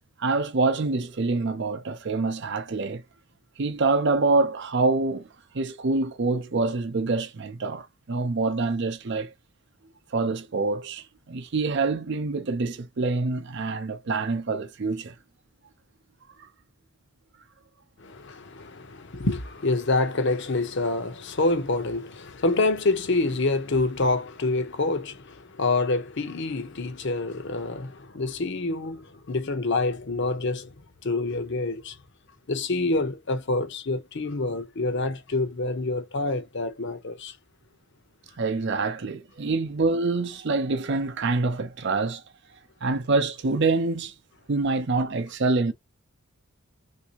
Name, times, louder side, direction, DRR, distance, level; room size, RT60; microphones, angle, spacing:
voice 1, 0.2-3.0 3.6-5.3 5.5-9.3 10.1-15.1 16.4-16.5 38.4-42.2 42.8-44.1 44.5-45.7, right 3 dB, 55° right, 0.6 m, -26 dB
voice 2, 18.0-30.8 31.0-32.0 32.5-37.3, left 3 dB, 55° left, 0.7 m, -27 dB
3.4 x 2.7 x 2.8 m
head